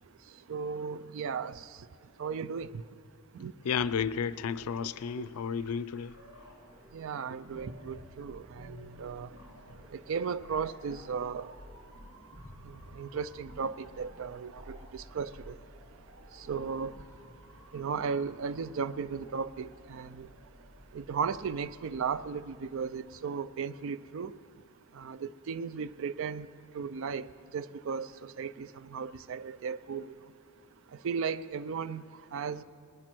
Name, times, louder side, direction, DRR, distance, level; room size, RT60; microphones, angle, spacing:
voice 1, 0.5-1.7 2.2-2.8 3.3-3.5 6.9-9.3 9.9-11.5 12.6-15.6 16.4-16.9 17.7-20.3 20.9-24.3 24.9-26.5 26.7-27.3 27.5-30.1 31.0-32.0 32.3-32.6, right 6 dB, 60° right, 16 dB, 0.4 m, -36 dB
voice 2, 3.6-6.2, left 6 dB, 80° left, 16 dB, 0.4 m, -32 dB
sound 1, 3.7-17.3, equal, 20° right, 2.6 m, -53 dB
Motor vehicle (road) / Siren, 6.1-22.4, equal, 80° right, 3.0 m, -57 dB
20.0 x 10.5 x 4.5 m, 2.7 s
head